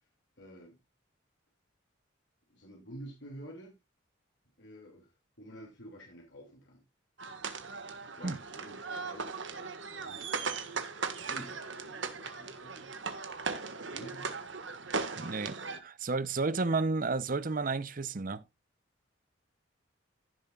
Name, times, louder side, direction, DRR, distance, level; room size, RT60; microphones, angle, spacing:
voice 1, 0.4-0.8 2.5-3.7 4.6-5.1 5.4-6.8 8.2-10.6 11.0-12.9 13.9-14.4, right 1 dB, 70° left, 3.0 m, -50 dB
sound 1, 7.2-15.8, right 4 dB, 75° right, 1.6 m, -38 dB
voice 2, 15.2-18.4, right 3 dB, 45° right, 0.7 m, -32 dB
15.5 x 7.3 x 2.4 m
head